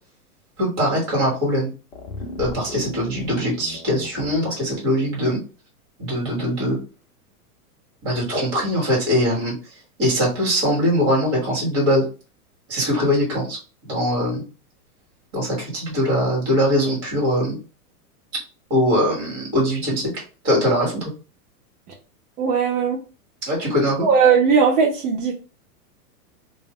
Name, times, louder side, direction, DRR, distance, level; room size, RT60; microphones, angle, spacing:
voice 1, 0.6-1.7 2.4-5.4 6.0-6.8 8.0-9.5 10.0-12.0 12.7-14.4 15.3-17.6 18.7-21.1 23.4-24.1, equal, 30° right, -3 dB, 1.5 m, -22 dB
sound 1, 1.9-4.4, left 2 dB, 35° left, 0.5 m, -36 dB
voice 2, 22.4-23.0 24.0-25.3, right 6 dB, 80° right, -1 dB, 0.8 m, -18 dB
2.5 x 2.0 x 3.0 m, 0.34 s
supercardioid pair, 155°, 45 cm